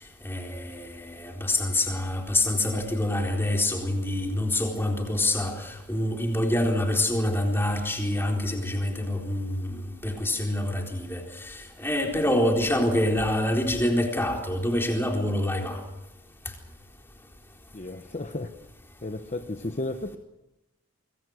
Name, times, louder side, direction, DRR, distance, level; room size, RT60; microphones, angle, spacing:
voice 1, 0.2-9.8 10.0-15.8, left 1 dB, 10° left, 4.0 m, -26 dB
voice 2, 17.7-18.5 19.0-20.2, left 2 dB, 30° left, 0.9 m, -33 dB
25.0 x 23.5 x 6.5 m
head